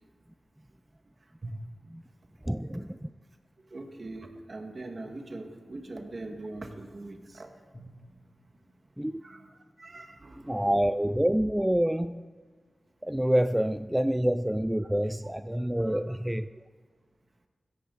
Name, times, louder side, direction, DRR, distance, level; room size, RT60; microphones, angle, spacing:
voice 1, 2.4-3.1 9.0-9.2 10.5-12.2 13.0-16.5, equal, 10° right, 12 dB, 0.4 m, -27 dB
voice 2, 3.7-7.5 9.2-9.5 9.8-10.6 15.8-16.2, right 2 dB, 50° right, 4 dB, 1.9 m, -42 dB
Drum, 7.7-10.7, right 1 dB, 30° left, 3.4 m, -57 dB
16.5 x 14.0 x 4.1 m, 1.5 s
cardioid pair, 50°, 0 cm